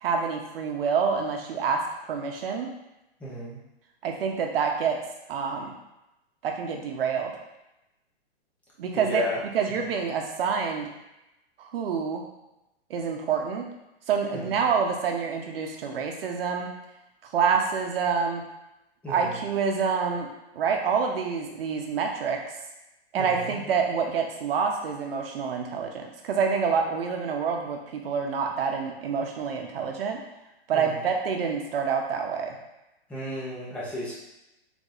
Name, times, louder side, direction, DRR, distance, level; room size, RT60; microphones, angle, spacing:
voice 1, 0.0-2.7 4.0-5.0 5.3-5.7 6.4-7.3 8.8-9.2 9.5-10.9 11.6-12.2 12.9-13.6 14.1-16.7 17.3-18.4 19.1-20.3 20.5-22.4 23.1-30.2 30.7-32.6, right 6 dB, 60° right, 2 dB, 0.8 m, -27 dB
voice 2, 3.2-3.6 8.9-9.4 14.3-14.5 19.0-19.3 23.1-23.6 30.7-31.0 33.1-34.1, left 1 dB, 5° left, -8 dB, 0.5 m, -33 dB
3.9 x 3.4 x 2.5 m, 0.93 s
hypercardioid pair, 155°, 32 cm